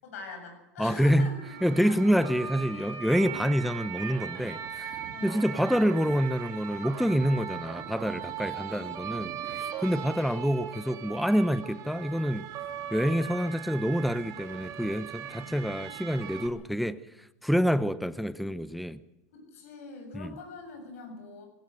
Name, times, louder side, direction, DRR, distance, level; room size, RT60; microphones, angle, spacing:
voice 1, 0.0-1.6 1.9-2.2 3.2-3.5 5.1-5.5 8.5-9.1 9.6-10.3 19.3-21.5, left 3 dB, 90° left, 7.5 m, -44 dB
voice 2, 0.8-1.3 1.6-12.5 12.9-17.0 17.4-19.0 20.1-20.3, equal, ahead, 0.8 m, -27 dB
sound 1, 1.4-16.5, right 9 dB, 50° right, 3.1 m, -39 dB
20.0 x 17.0 x 8.0 m
supercardioid pair, 110°, 7 cm